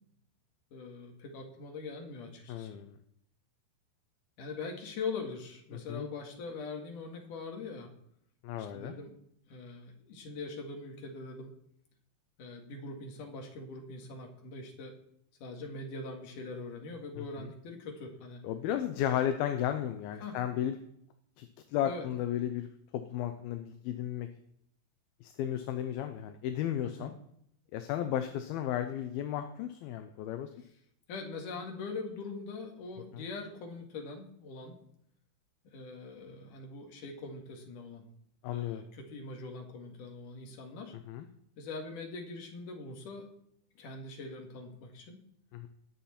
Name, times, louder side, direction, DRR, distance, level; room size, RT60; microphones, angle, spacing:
voice 1, 0.7-2.7 4.4-7.9 8.6-9.1 9.5-11.5 12.4-14.9 15.4-18.4 20.2-20.4 21.8-22.1 26.8-27.1 31.1-34.8 35.6-38.1 38.5-40.9 41.6-43.3 43.8-45.2, left 3 dB, 55° left, 2 dB, 3.3 m, -42 dB
voice 2, 2.5-3.0 5.7-6.1 8.4-8.9 17.4-17.5 18.4-20.8 21.4-22.7 22.9-24.3 25.2-27.1 27.7-30.5 33.1-33.2 38.4-38.8 41.1-41.3 45.5-45.7, left 11 dB, 75° left, 8 dB, 2.4 m, -34 dB
20.5 x 7.5 x 4.4 m, 0.71 s
omnidirectional pair, 4.7 m